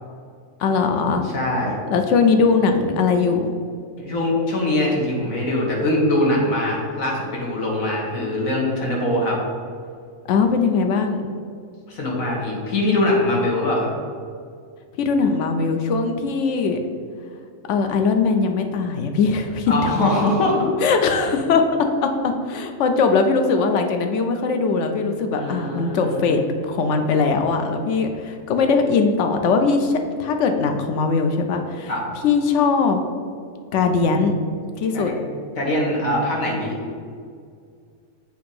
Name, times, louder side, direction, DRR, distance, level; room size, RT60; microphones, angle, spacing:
voice 1, 0.6-1.2 1.9-3.5 10.3-11.4 15.0-16.8 17.7-19.9 20.8-31.9 32.2-33.0 33.7-34.3 34.8-35.1, left 4 dB, 65° left, 6 dB, 0.9 m, -20 dB
voice 2, 1.2-1.7 4.0-9.4 11.9-13.9 19.7-20.6 25.3-26.2 31.9-32.0 34.9-35.1 35.6-36.7, left 1 dB, 85° left, -2 dB, 1.7 m, -22 dB
7.7 x 2.9 x 5.3 m, 2.2 s
omnidirectional pair, 1.4 m